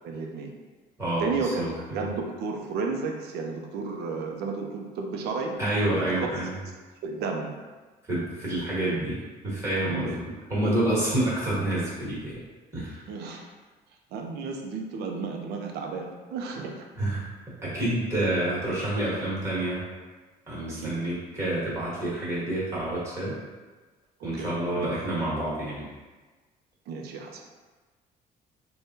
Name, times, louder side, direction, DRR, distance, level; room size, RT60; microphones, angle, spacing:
voice 1, 0.0-0.5 1.2-1.7 1.9-5.6 5.9-6.3 7.0-7.5 9.9-10.1 13.1-13.4 14.1-16.9 20.7-21.0 24.3-24.9 26.9-27.4, right 4 dB, 75° right, 2 dB, 0.5 m, -33 dB
voice 2, 1.0-2.0 5.6-6.6 8.1-10.2 10.5-12.4 12.7-13.0 17.0-17.2 17.6-19.8 20.5-23.4 24.2-25.9, right 1 dB, 15° right, -8 dB, 1.4 m, -28 dB
3.5 x 2.2 x 2.7 m, 1.3 s
cardioid pair, 110°, 17 cm